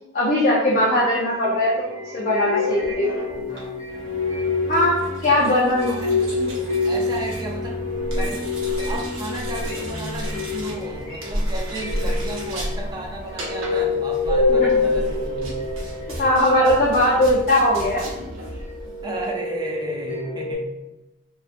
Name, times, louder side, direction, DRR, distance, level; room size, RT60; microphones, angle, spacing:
voice 1, 0.1-1.7 2.1-3.1 4.7-6.0 6.4-6.5 14.6-14.9 16.2-18.1, left 1 dB, 40° left, -6 dB, 0.4 m, -19 dB
sound 1, 0.7-16.9 17.4-20.6, left 3 dB, 60° left, 0.8 m, -27 dB
sound 2, 3.4-19.4, right 1 dB, 90° right, 0.7 m, -39 dB
sound 3, 3.9-15.5, right 1 dB, 45° right, 0.7 m, -39 dB
voice 2, 5.3-5.6 6.0-6.1 6.8-8.5 8.9-15.6 19.0-20.7, right 1 dB, 20° right, 0 dB, 0.3 m, -34 dB
2.5 x 2.3 x 2.4 m, 0.99 s
head